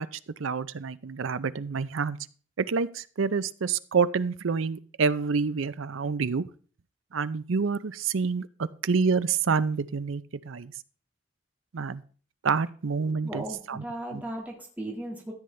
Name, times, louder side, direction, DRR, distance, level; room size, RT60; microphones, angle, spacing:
voice 1, 0.0-2.2 2.6-6.4 7.1-10.7 11.7-12.0 12.4-13.8 14.1-14.2, right 5 dB, 85° right, 16 dB, 0.6 m, -28 dB
voice 2, 13.0-15.3, right 1 dB, 10° right, -2 dB, 1.8 m, -37 dB
14.0 x 8.4 x 3.3 m, 0.41 s
head